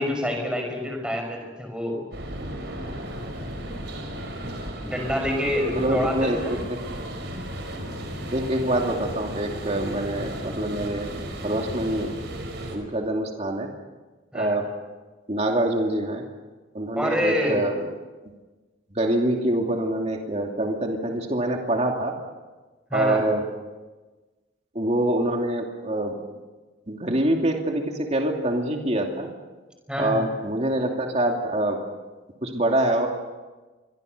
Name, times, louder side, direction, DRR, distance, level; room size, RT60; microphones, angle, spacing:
voice 1, 0.0-2.0 4.8-6.6 14.3-14.6 17.0-17.6 22.9-23.2 29.9-30.2, left 1 dB, 5° right, 2 dB, 5.7 m, -27 dB
sound 1, 2.1-12.8, right 1 dB, 60° right, 4.9 m, -34 dB
voice 2, 5.7-6.8 8.3-12.1 12.7-13.7 14.3-14.7 15.3-16.2 16.7-17.8 18.9-22.1 22.9-23.4 24.7-26.1 26.9-29.3 30.0-31.8 32.4-33.1, right 1 dB, 35° right, 2 dB, 2.7 m, -25 dB
27.0 x 23.5 x 6.7 m, 1.3 s
head